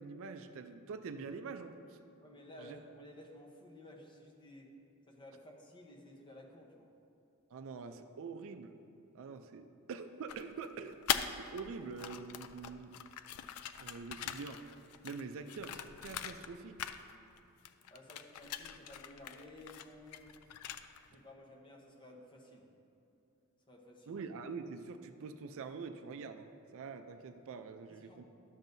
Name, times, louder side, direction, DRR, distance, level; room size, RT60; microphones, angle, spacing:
voice 1, 0.0-2.0 2.6-2.8 7.5-8.8 9.1-11.0 11.3-12.9 13.8-14.6 15.0-16.8 24.1-28.2, right 5 dB, 65° right, 8 dB, 0.4 m, -45 dB
voice 2, 2.2-4.7 5.1-6.9 17.9-20.4 21.1-22.7 23.7-24.1 27.9-28.2, left 1 dB, 20° left, -1 dB, 0.9 m, -54 dB
sound 1, 10.3-11.6 11.9-16.5 16.8-17.4 17.6-21.1, left 9 dB, 75° left, 0.4 m, -41 dB
12.0 x 7.3 x 2.6 m, 2.7 s
head